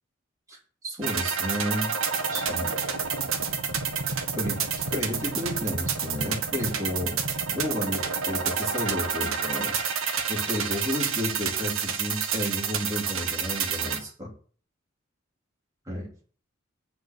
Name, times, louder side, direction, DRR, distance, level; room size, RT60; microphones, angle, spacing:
voice 1, 0.8-1.9 2.2-2.7 4.3-7.2 7.5-9.8 10.3-14.3 15.8-16.1, left 1 dB, 15° right, -4 dB, 3.4 m, -32 dB
sound 1, 1.0-14.0, right 6 dB, 80° right, 1.4 m, -29 dB
8.1 x 4.8 x 6.4 m, 0.43 s
head